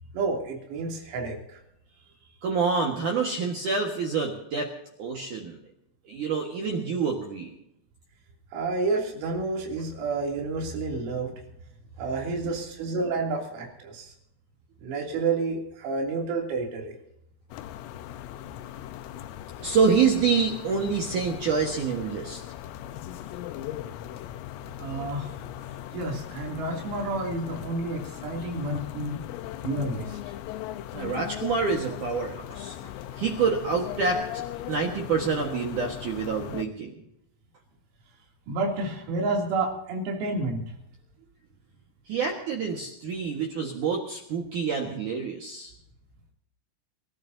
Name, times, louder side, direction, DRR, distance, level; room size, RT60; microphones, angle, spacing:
voice 1, 0.1-1.6 8.5-11.3 12.0-14.1 14.8-17.0 24.8-25.3 25.9-29.2 29.6-30.2 38.5-40.7, right 3 dB, 90° right, -1 dB, 5.8 m, -30 dB
voice 2, 2.4-4.7 5.0-5.6 6.1-7.5 12.4-12.6 19.6-22.4 30.9-36.9 42.1-45.7, right 5 dB, 60° right, 0 dB, 2.1 m, -27 dB
sound 1, 17.5-36.7, left 12 dB, 85° left, 3.3 m, -39 dB
28.5 x 14.0 x 2.8 m, 0.80 s
omnidirectional pair, 6.0 m